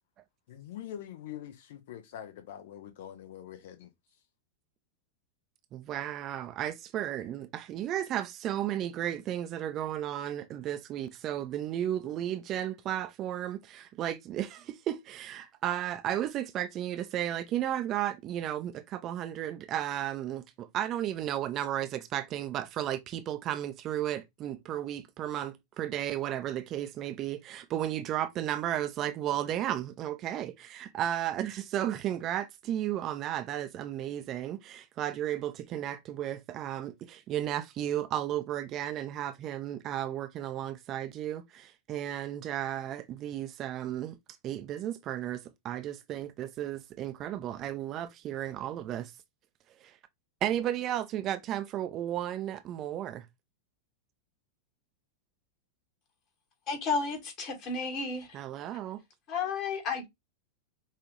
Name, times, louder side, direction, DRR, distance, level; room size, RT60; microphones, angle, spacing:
voice 1, 0.5-3.9, left 11 dB, 55° left, 0.7 m, -44 dB
voice 2, 5.7-44.2 44.4-49.1 49.8-50.0 50.4-53.3 58.3-59.0, right 11 dB, 35° right, 0.5 m, -34 dB
voice 3, 56.7-58.4 58.7-58.8 59.3-60.0, left 4 dB, 40° left, 1.6 m, -32 dB
5.6 x 2.5 x 3.2 m
figure-of-eight pair, 90°, 0 cm